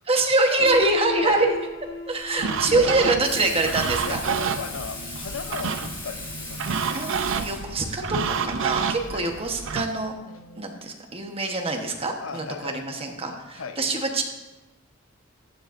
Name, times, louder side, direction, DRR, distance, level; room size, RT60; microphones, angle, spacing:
voice 1, 0.1-1.6 2.1-4.2 6.9-10.2 10.6-14.2, right 2 dB, 30° right, 3 dB, 1.1 m, -24 dB
Piano, 0.6-6.4, left 4 dB, 40° left, 2.9 m, -39 dB
voice 2, 2.3-2.9 4.1-6.9 8.9-9.2 10.3-10.7 12.2-12.7 13.2-13.9 14.1-14.2, left 5 dB, 70° left, 9 dB, 0.7 m, -37 dB
sound 1, 2.4-9.9, right 6 dB, 70° right, 0.5 m, -29 dB
Water tap faucet / Sink (filling or washing), 3.2-7.9 9.5-9.6, left 2 dB, 25° left, 2.9 m, -38 dB
14.0 x 9.9 x 2.6 m, 1.0 s
head